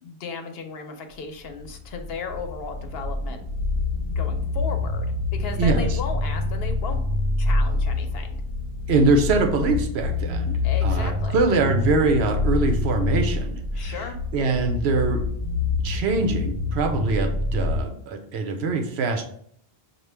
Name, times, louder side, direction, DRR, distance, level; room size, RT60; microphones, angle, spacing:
voice 1, 0.0-3.4 4.1-7.0 7.4-8.4 10.6-11.4 13.7-14.2, left 4 dB, 70° left, 5 dB, 0.9 m, -35 dB
sound 1, 1.5-17.8, left 3 dB, 25° left, 0.7 m, -26 dB
voice 2, 8.9-14.0 14.3-15.2 15.8-19.3, right 3 dB, 90° right, 5 dB, 0.9 m, -23 dB
5.9 x 2.4 x 3.3 m, 0.67 s
omnidirectional pair, 1.0 m